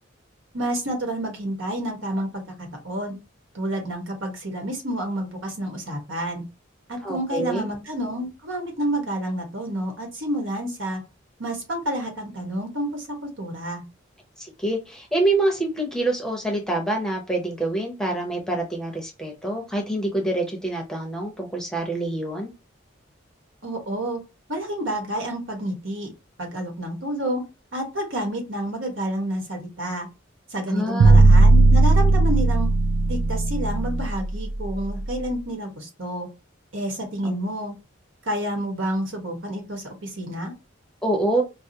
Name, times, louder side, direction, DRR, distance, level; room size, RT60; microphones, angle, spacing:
voice 1, 0.5-2.4 2.8-3.2 3.5-6.4 6.9-11.0 11.4-13.8 23.6-24.2 24.5-26.1 26.4-27.4 27.7-30.1 30.5-32.7 33.1-36.3 36.7-37.7 38.2-40.5, right 1 dB, 80° right, 2 dB, 1.3 m, -29 dB
voice 2, 7.0-7.7 14.4-22.5 30.7-31.3 37.2-37.3 41.0-41.4, right 2 dB, 5° left, 1 dB, 0.7 m, -26 dB
sound 1, 31.0-35.1, right 2 dB, 55° right, 0.3 m, -16 dB
4.6 x 2.0 x 2.7 m, 0.28 s
head